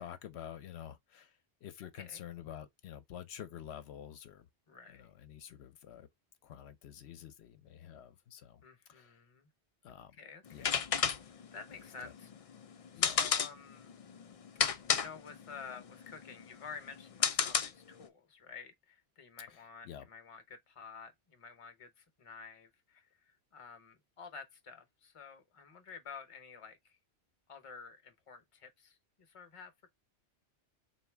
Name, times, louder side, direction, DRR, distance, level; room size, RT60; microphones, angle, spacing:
voice 1, 0.0-4.5 4.9-6.1 6.4-8.6 8.9-9.2 9.8-10.1 10.5-10.9 11.7-12.1 12.9-13.2 19.5-20.1, left 10 dB, 75° left, 0.8 m, -49 dB
voice 2, 1.9-2.3 4.7-5.1 8.6-9.5 10.1-10.9 11.2-12.3 13.0-13.9 14.6-27.0 27.5-29.7, left 5 dB, 35° left, 0.7 m, -51 dB
sound 1, 10.5-18.1, left 7 dB, 55° left, 0.4 m, -33 dB
3.9 x 2.7 x 3.3 m
omnidirectional pair, 1.1 m